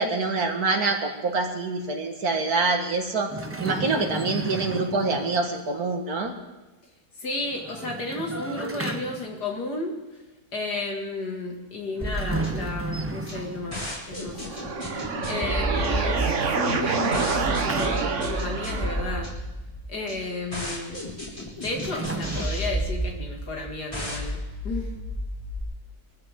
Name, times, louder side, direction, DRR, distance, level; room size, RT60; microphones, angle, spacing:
voice 1, 0.0-3.3 3.6-6.3, right 3 dB, 65° right, 3 dB, 2.2 m, -25 dB
sound 1, 3.3-5.6 7.5-9.4 11.9-14.0 16.4-18.5 21.4-22.5, right 2 dB, 20° right, 0.3 m, -34 dB
voice 2, 7.2-10.2 10.5-14.7 15.2-19.4 19.9-21.0 21.6-24.9, left 2 dB, 80° left, 0 dB, 3.0 m, -33 dB
sound 2, 12.0-25.6, equal, 20° left, 3.8 m, -32 dB
sound 3, 14.3-19.3, right 5 dB, 50° right, 1.4 m, -27 dB
22.5 x 14.0 x 3.8 m, 1.1 s
omnidirectional pair, 1.7 m